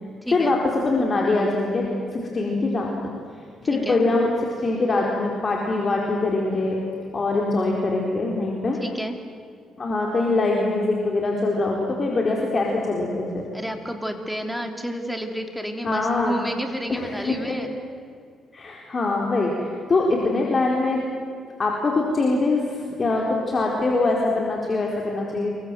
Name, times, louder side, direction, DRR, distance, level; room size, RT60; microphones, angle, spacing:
voice 1, 0.3-0.6 3.7-4.0 8.8-9.2 13.5-17.8, equal, ahead, 5 dB, 3.5 m, -31 dB
voice 2, 0.8-2.9 3.6-4.3 4.6-6.8 7.1-8.8 9.8-13.4 15.8-16.4 16.9-17.7 18.5-21.0 21.6-25.5, left 3 dB, 35° left, -1 dB, 4.3 m, -23 dB
29.0 x 23.5 x 7.8 m, 2.2 s
cardioid pair, 90°, 0 cm